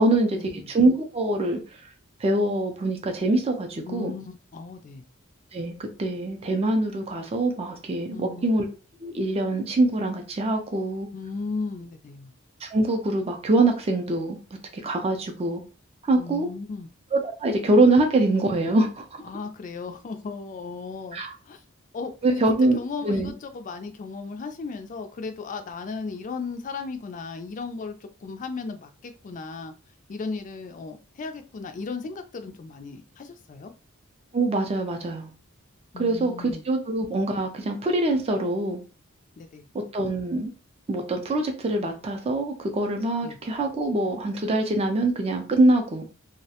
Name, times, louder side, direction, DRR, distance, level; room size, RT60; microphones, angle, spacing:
voice 1, 0.0-1.6 2.2-4.1 5.5-8.7 9.0-11.1 12.6-14.4 14.8-15.6 16.0-16.5 17.1-19.2 21.1-21.3 22.2-22.8 23.0-23.3 34.3-35.3 36.0-38.8 39.7-40.5 40.9-46.0, right 2 dB, 30° right, 4 dB, 0.4 m, -24 dB
voice 2, 3.8-5.0 8.1-8.6 11.1-12.3 16.1-16.9 19.2-21.6 21.9-22.4 22.7-29.7 30.1-33.7 35.9-36.6 39.4-39.7 43.2-43.4, left 4 dB, 40° left, 7 dB, 0.3 m, -36 dB
2.3 x 2.1 x 2.8 m, 0.35 s
head